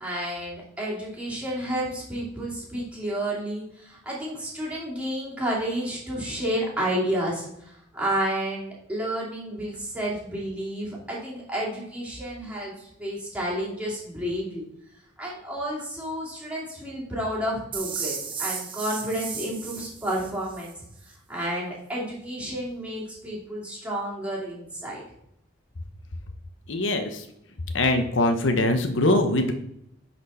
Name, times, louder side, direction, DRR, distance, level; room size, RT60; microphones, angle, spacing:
voice 1, 0.0-14.6 15.2-20.8 21.3-25.0, right 1 dB, 5° right, -6 dB, 2.6 m, -31 dB
sound 1, 17.7-20.7, right 6 dB, 25° right, 1.1 m, -34 dB
voice 2, 26.7-27.3 27.7-29.5, left 1 dB, 80° left, 6 dB, 0.9 m, -22 dB
10.5 x 4.3 x 4.2 m, 0.76 s
head